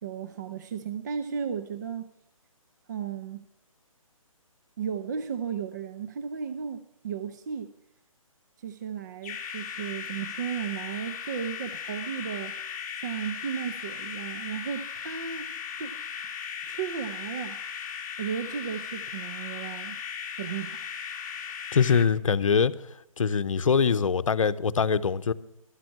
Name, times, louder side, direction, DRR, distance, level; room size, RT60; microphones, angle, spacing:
voice 1, 0.0-2.1 2.9-3.4 4.8-7.7 8.6-12.7 13.0-15.5 15.8-15.9 16.7-17.6 18.2-20.0 20.4-20.8, right 7 dB, 30° right, 0.6 m, -34 dB
sound 1, 9.2-22.1, left 7 dB, 30° left, 1.2 m, -37 dB
voice 2, 21.7-22.7 23.2-25.3, left 6 dB, 65° left, 0.8 m, -23 dB
13.0 x 7.7 x 7.6 m
figure-of-eight pair, 150°, 18 cm